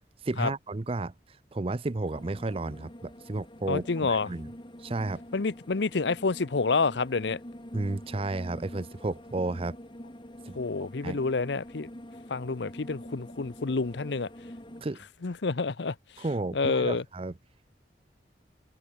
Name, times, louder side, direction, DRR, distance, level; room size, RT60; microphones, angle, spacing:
voice 1, 0.2-1.1 1.5-4.5 4.8-5.2 7.7-9.8 10.5-10.6 11.0-11.2 14.8-15.0 16.2-17.3, right 2 dB, 30° right, 0.6 m, -32 dB
sound 1, 2.1-14.8, equal, 25° left, 2.9 m, -46 dB
voice 2, 3.7-4.3 5.3-7.4 10.6-11.9 12.3-14.3 15.2-15.9 16.5-17.0, left 4 dB, 70° left, 0.7 m, -28 dB
head